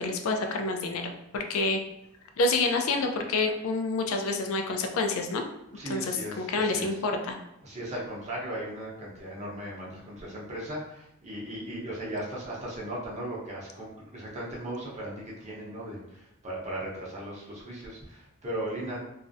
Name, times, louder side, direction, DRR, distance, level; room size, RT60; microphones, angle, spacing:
voice 1, 0.0-1.8 2.4-5.4 5.9-7.4, left 3 dB, 85° left, 4 dB, 0.4 m, -28 dB
voice 2, 5.7-7.0 7.6-19.1, right 1 dB, 35° right, -5 dB, 0.7 m, -37 dB
2.4 x 2.0 x 2.5 m, 0.85 s
head